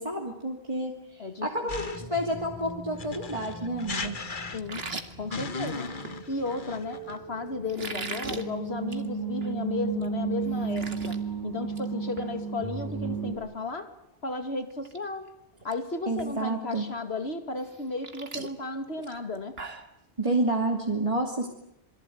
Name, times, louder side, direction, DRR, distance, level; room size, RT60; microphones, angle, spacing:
voice 1, 0.0-4.2 16.1-16.8 20.2-21.5, right 1 dB, 30° right, 0 dB, 2.9 m, -29 dB
sound 1, 1.7-2.2 3.0-4.9 5.3-7.2, left 3 dB, 50° left, 1.5 m, -36 dB
sound 2, 1.9-13.3, right 5 dB, 20° left, 7.8 m, -35 dB
voice 2, 4.5-4.9 5.2-5.9 6.3-11.2 11.4-13.9 14.2-15.3 15.6-19.6, left 3 dB, 75° left, 8 dB, 2.6 m, -34 dB
sound 3, 4.6-6.2 7.7-8.4 8.8-9.1 9.4-9.5 10.0-10.1 10.4-11.2 11.5-11.9 12.2-12.3 14.1-14.2 14.7-15.0 15.3-15.7 16.2-16.3 17.6-19.9, right 3 dB, 70° right, 2.3 m, -39 dB
27.5 x 22.5 x 9.4 m, 0.77 s
omnidirectional pair, 1.1 m